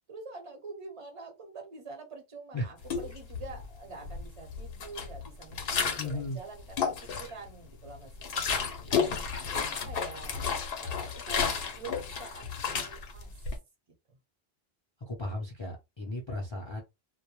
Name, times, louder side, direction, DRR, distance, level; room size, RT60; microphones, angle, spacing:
voice 1, 0.1-9.1 9.4-10.4 10.8-13.3 14.1-14.2, right 4 dB, 35° right, 0.8 m, -46 dB
sound 1, 2.8-3.7 4.0-6.2 6.6-7.5 7.9-13.6, left 6 dB, 70° left, 0.8 m, -32 dB
voice 2, 6.0-6.4 15.1-16.8, left 1 dB, 35° left, 0.5 m, -35 dB
2.1 x 2.1 x 2.9 m
omnidirectional pair, 1.0 m